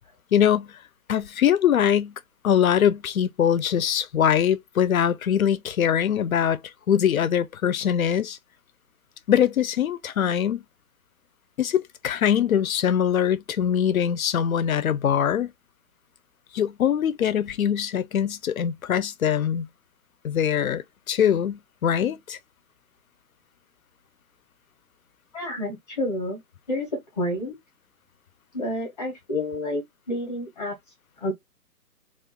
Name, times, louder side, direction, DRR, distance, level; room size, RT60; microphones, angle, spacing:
voice 1, 0.3-0.7 1.1-2.1 2.4-6.6 6.9-8.4 9.3-10.6 11.6-15.5 16.5-19.7 20.2-22.4, left 9 dB, 60° left, 0.6 m, -22 dB
voice 2, 25.3-26.4 26.7-27.6 28.5-30.8 31.2-31.3, left 1 dB, 25° left, 0.7 m, -29 dB
2.3 x 2.3 x 3.6 m
figure-of-eight pair, 150°, 48 cm